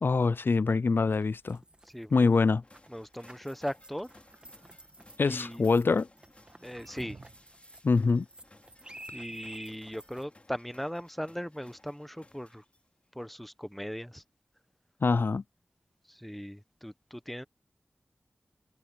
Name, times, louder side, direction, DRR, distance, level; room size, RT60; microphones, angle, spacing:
voice 1, 0.0-1.6 2.1-2.6 5.2-6.1 7.8-8.3 15.0-15.4, left 4 dB, 60° left, 0.4 m, -24 dB
sound 1, 1.1-10.2, right 1 dB, 25° right, 1.5 m, -51 dB
voice 2, 1.9-2.3 2.9-4.1 5.2-5.7 6.6-7.2 9.1-12.6 13.1-14.2 16.1-17.4, equal, 5° left, 1.2 m, -39 dB
sound 2, 2.6-13.0, left 2 dB, 30° left, 3.4 m, -61 dB
sound 3, 4.0-4.9 6.3-7.6, right 3 dB, 60° right, 0.9 m, -52 dB
wide cardioid pair, 75°, 4 cm